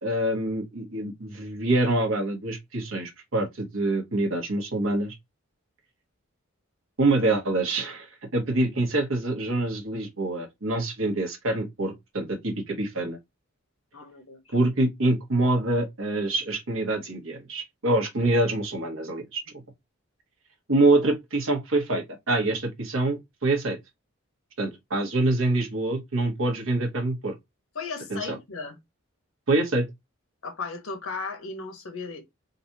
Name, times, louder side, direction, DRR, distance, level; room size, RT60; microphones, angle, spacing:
voice 1, 0.0-5.1 7.0-8.1 8.3-13.2 14.5-19.4 20.7-23.8 24.6-27.3 28.1-28.4 29.5-29.9, right 2 dB, 70° right, 1.3 m, -25 dB
voice 2, 13.9-14.5 27.7-28.8 30.4-32.2, left 4 dB, 85° left, 1.3 m, -36 dB
3.9 x 2.6 x 2.8 m
head